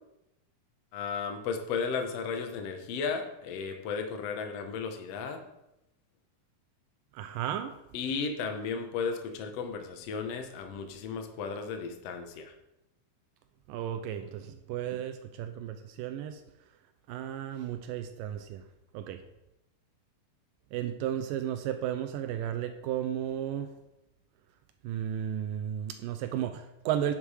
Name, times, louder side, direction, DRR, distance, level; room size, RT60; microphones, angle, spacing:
voice 1, 0.9-5.4 7.9-12.5, left 5 dB, 85° left, 5 dB, 1.4 m, -34 dB
voice 2, 7.1-7.7 13.7-16.4 17.1-18.6 18.9-19.2 20.7-23.7 24.8-27.1, right 10 dB, 90° right, 8 dB, 2.0 m, -34 dB
11.0 x 6.7 x 4.9 m, 0.88 s
omnidirectional pair, 4.5 m